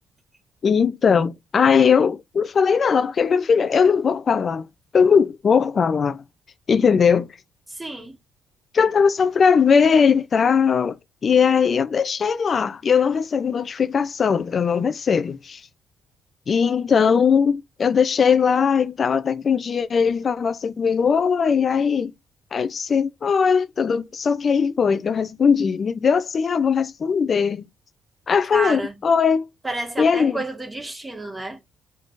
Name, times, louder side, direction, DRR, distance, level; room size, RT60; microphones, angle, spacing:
voice 1, 0.6-4.7 4.9-6.2 6.7-7.3 8.7-11.0 11.2-15.6 16.5-22.1 22.5-27.6 28.3-29.5 30.0-30.4, left 6 dB, 45° left, 0.5 m, -19 dB
voice 2, 7.8-8.1 28.5-28.9 29.6-31.6, right 2 dB, 15° right, 1.6 m, -30 dB
5.4 x 3.6 x 2.5 m
cardioid pair, 90°, 0 cm